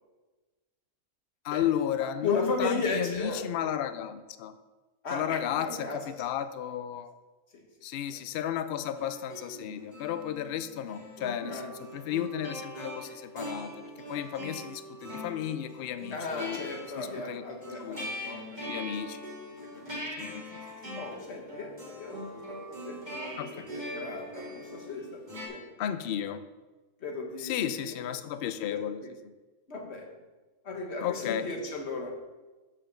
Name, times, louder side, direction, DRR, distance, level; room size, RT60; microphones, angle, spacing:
voice 1, 1.4-4.5 5.1-7.1 7.8-16.6 17.0-17.4 17.8-18.1 18.7-19.2 20.2-20.5 23.4-23.7 25.8-26.4 27.4-29.0 31.0-31.5, left 10 dB, 90° left, 11 dB, 0.5 m, -33 dB
voice 2, 2.0-3.4 5.0-6.3 7.5-7.6 8.1-8.2 11.4-11.7 16.1-18.9 19.6-20.1 20.9-25.7 27.0-28.0 28.6-29.1 29.7-30.1 30.6-32.1, left 3 dB, 50° left, 1 dB, 1.5 m, -36 dB
sound 1, 9.0-25.5, equal, 30° right, 2.2 m, -42 dB
6.9 x 5.1 x 6.8 m, 1.2 s
omnidirectional pair, 1.5 m